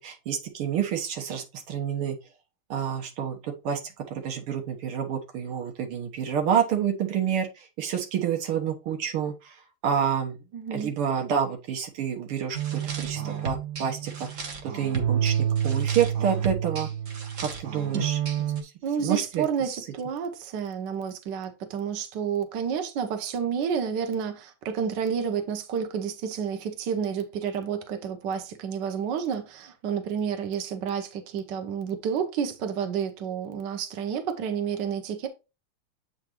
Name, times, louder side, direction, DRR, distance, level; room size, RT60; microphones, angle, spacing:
voice 1, 0.0-2.2 2.7-3.4 3.6-3.8 4.1-7.5 7.8-9.5 9.8-10.4 10.7-14.3 14.6-16.9 17.4-18.2 19.0-19.5, right 8 dB, 90° right, 2.1 m, -28 dB
voice 2, 10.5-10.9 18.8-35.3, right 7 dB, 60° right, 1.5 m, -30 dB
sound 1, 12.5-18.6, right 8 dB, 45° right, 1.2 m, -29 dB
7.8 x 4.8 x 3.0 m
omnidirectional pair, 2.4 m